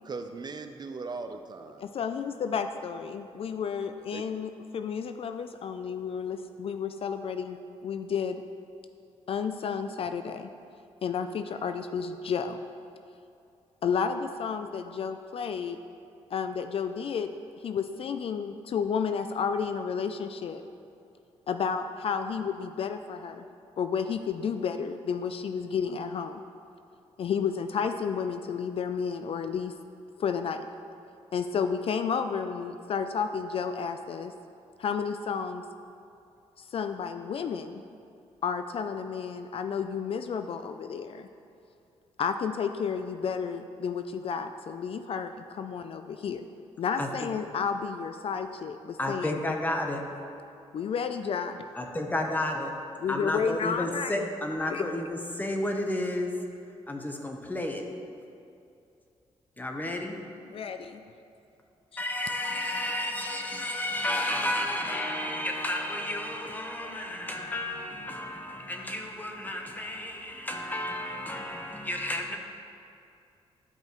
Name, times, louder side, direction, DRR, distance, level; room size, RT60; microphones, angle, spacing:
voice 1, 0.0-1.9 3.5-3.6 4.1-4.2, right 4 dB, 40° right, 7 dB, 0.4 m, -39 dB
voice 2, 1.8-7.6 7.8-8.4 9.3-10.5 11.0-12.6 13.8-15.8 16.3-17.3 17.6-20.6 21.5-23.4 23.8-26.4 27.2-29.7 30.2-30.6 31.3-34.3 34.8-35.6 36.6-37.8 38.4-41.3 42.2-46.4 46.8-49.4 50.7-51.6 53.0-54.3 54.7-54.8 60.5-61.0, left 6 dB, 55° left, 8 dB, 0.4 m, -31 dB
voice 3, 49.0-50.0 51.7-52.7 53.1-56.3 56.9-57.8 59.6-60.2 62.0-72.4, left 1 dB, 15° left, 2 dB, 0.9 m, -32 dB
12.0 x 5.4 x 3.0 m, 2.6 s
cardioid pair, 90°, 11 cm